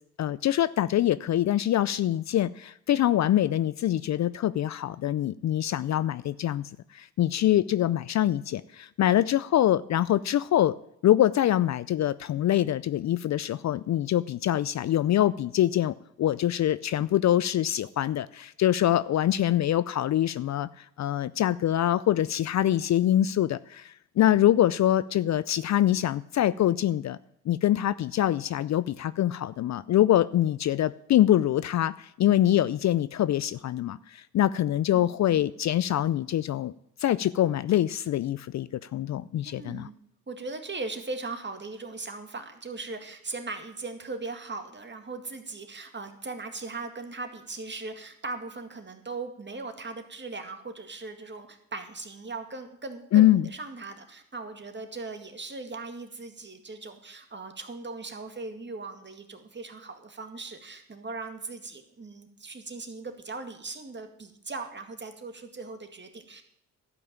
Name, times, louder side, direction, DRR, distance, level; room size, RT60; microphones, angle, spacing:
voice 1, 0.2-10.7 11.0-27.2 27.5-36.7 37.0-39.9 53.1-53.5, left 12 dB, 50° left, 17 dB, 0.5 m, -24 dB
voice 2, 34.9-35.5 39.4-39.9 40.3-66.4, right 3 dB, 30° right, 6 dB, 2.0 m, -39 dB
12.0 x 5.5 x 8.7 m, 0.74 s
supercardioid pair, 60°, 35 cm